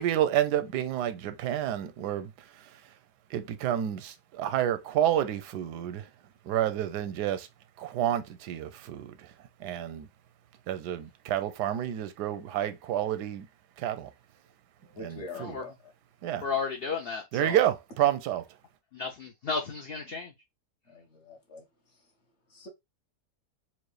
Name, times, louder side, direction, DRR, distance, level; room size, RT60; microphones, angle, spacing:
voice 1, 0.0-3.0 3.3-6.1 6.4-7.5 7.8-10.1 10.7-13.5 13.8-14.1 15.0-15.6 16.2-16.5 17.3-18.5, right 11 dB, 85° right, 1.2 m, -29 dB
voice 2, 14.9-15.7 16.2-16.3 20.9-22.1 22.5-22.7, left 2 dB, 45° left, 1.3 m, -45 dB
voice 3, 16.4-17.6 18.9-20.3, left 5 dB, 70° left, 0.5 m, -33 dB
4.5 x 2.4 x 3.1 m
omnidirectional pair, 1.7 m